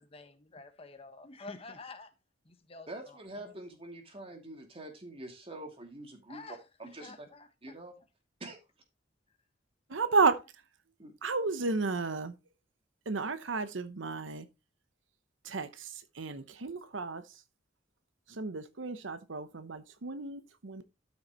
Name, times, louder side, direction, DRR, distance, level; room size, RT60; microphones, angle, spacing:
voice 1, 0.0-2.1 2.4-3.6 6.3-7.8 9.9-10.1, left 3 dB, 30° left, 1.3 m, -49 dB
voice 2, 2.9-6.4 6.8-7.1 7.6-7.9 8.4-8.6 11.0-11.1, right 1 dB, 30° right, 2.5 m, -45 dB
voice 3, 9.9-10.4 11.2-12.3 13.1-14.5 15.4-17.4 18.3-20.8, right 4 dB, 85° right, 0.8 m, -32 dB
12.5 x 6.4 x 3.0 m
head